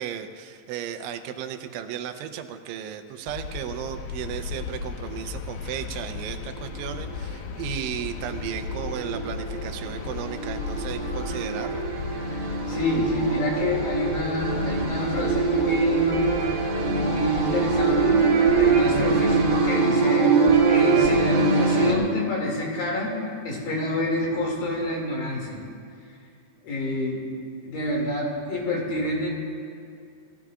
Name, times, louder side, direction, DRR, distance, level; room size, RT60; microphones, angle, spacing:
voice 1, 0.0-11.8, right 9 dB, 90° right, 7 dB, 3.2 m, -35 dB
sound 1, 3.3-19.6, left 6 dB, 85° left, 2.1 m, -35 dB
sound 2, 6.7-6.9 7.7-21.9, right 4 dB, 65° right, 4.3 m, -23 dB
voice 2, 12.3-16.3 16.9-18.3 18.6-20.3 20.7-23.2 23.4-25.6 26.6-27.2 27.6-29.3, left 1 dB, 55° left, -2 dB, 3.8 m, -27 dB
28.5 x 16.0 x 2.5 m, 2.4 s
omnidirectional pair, 5.3 m